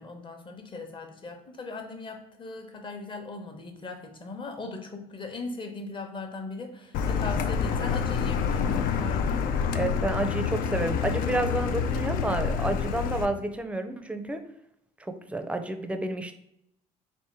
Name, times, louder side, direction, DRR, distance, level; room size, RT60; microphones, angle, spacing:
voice 1, 0.0-9.5, left 3 dB, 35° left, 5 dB, 0.9 m, -39 dB
Car, 6.9-13.3, left 6 dB, 70° left, 0.4 m, -27 dB
voice 2, 9.7-14.4 15.0-16.3, right 2 dB, 10° right, 7 dB, 0.5 m, -30 dB
3.5 x 2.6 x 4.4 m, 0.78 s
supercardioid pair, 80°, 15 cm